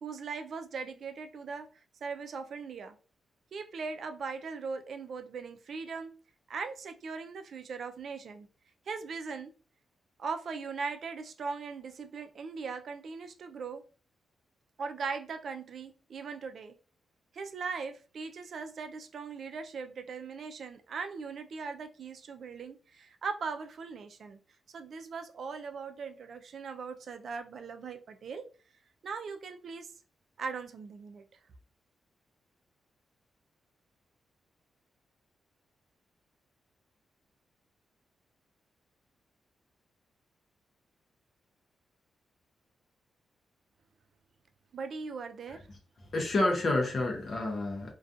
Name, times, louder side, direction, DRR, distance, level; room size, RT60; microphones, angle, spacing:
voice 1, 0.0-1.7 2.0-3.0 3.5-6.1 6.5-8.5 8.9-9.5 10.2-13.8 14.8-16.8 17.3-24.4 24.7-28.5 29.0-29.9 30.4-31.2 44.7-45.6, right 5 dB, 65° right, 0.4 m, -39 dB
voice 2, 46.1-47.9, left 2 dB, 50° left, 0.6 m, -29 dB
2.4 x 2.2 x 2.6 m
cardioid pair, 80°, 0 cm